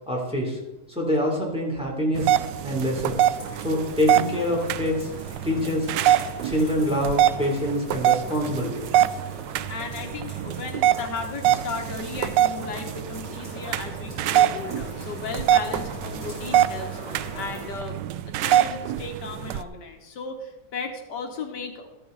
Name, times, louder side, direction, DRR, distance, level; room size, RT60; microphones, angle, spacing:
voice 1, 0.1-0.6 0.9-2.3 2.6-3.2 3.6-5.1 5.4-5.9 6.4-8.9, left 1 dB, 5° right, -2 dB, 3.1 m, -25 dB
sound 1, 2.2-19.6, right 11 dB, 90° right, 1.3 m, -25 dB
sound 2, 3.0-17.7, right 1 dB, 40° right, 4.1 m, -41 dB
voice 2, 9.4-18.0 18.3-21.9, left 4 dB, 80° left, 5 dB, 1.8 m, -35 dB
13.5 x 11.5 x 4.0 m, 1.0 s
omnidirectional pair, 1.9 m